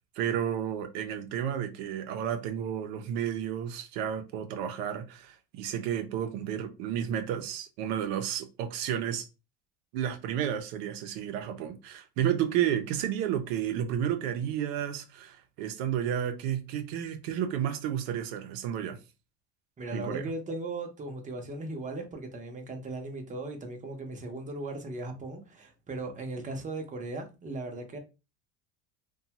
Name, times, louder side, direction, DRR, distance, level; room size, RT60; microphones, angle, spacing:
voice 1, 0.2-9.2 9.9-19.0 19.9-20.3, right 9 dB, 80° right, 0.6 m, -32 dB
voice 2, 19.8-28.0, right 2 dB, 25° right, 0.7 m, -37 dB
2.6 x 2.3 x 2.8 m
supercardioid pair, 115°, 30 cm